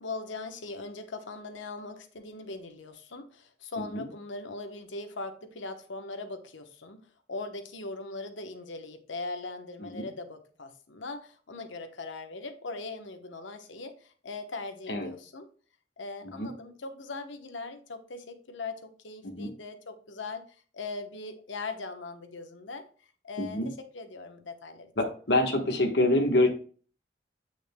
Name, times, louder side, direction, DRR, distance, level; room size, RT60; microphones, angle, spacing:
voice 1, 0.0-15.5 16.0-22.9 23.2-24.9, left 3 dB, 85° left, 8 dB, 1.0 m, -40 dB
voice 2, 23.4-23.7 25.0-26.5, left 1 dB, 60° left, 4 dB, 1.3 m, -26 dB
8.2 x 6.3 x 2.2 m, 0.41 s
head